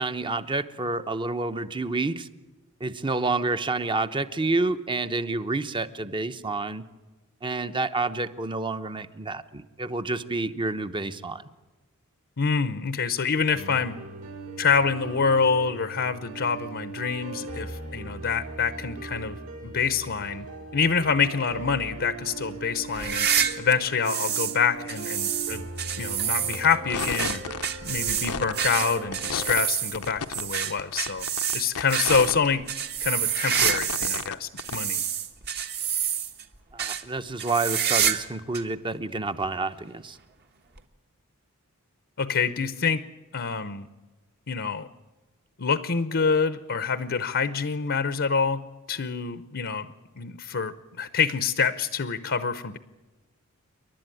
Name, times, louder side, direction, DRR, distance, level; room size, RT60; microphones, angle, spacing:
voice 1, 0.0-2.3 2.8-6.8 7.4-11.4 36.7-40.2, right 3 dB, 20° right, 11 dB, 0.9 m, -29 dB
voice 2, 12.4-13.9 14.6-20.5 20.7-23.3 23.6-25.6 25.9-27.4 27.8-31.3 31.5-32.7 33.0-35.0 42.2-43.0 43.3-43.9 44.5-44.9 45.6-49.9 50.2-52.8, left 5 dB, 55° left, 13 dB, 0.8 m, -26 dB
sound 1, 13.5-29.5, right 3 dB, 70° right, 6.1 m, -39 dB
sound 2, 22.9-24.6 24.9-34.3 34.6-36.4 36.8-37.0 37.4-38.3 38.5-38.6 39.4-39.5 40.8-40.9, right 8 dB, 45° right, 1.4 m, -28 dB
sound 3, 26.5-26.7 26.9-27.7 28.1-28.7 29.1-29.7 29.9-30.4 30.8-32.4 32.8-32.9 33.5-34.3 34.6-34.8, left 6 dB, 85° left, 0.9 m, -32 dB
28.5 x 12.0 x 9.1 m, 1.2 s
head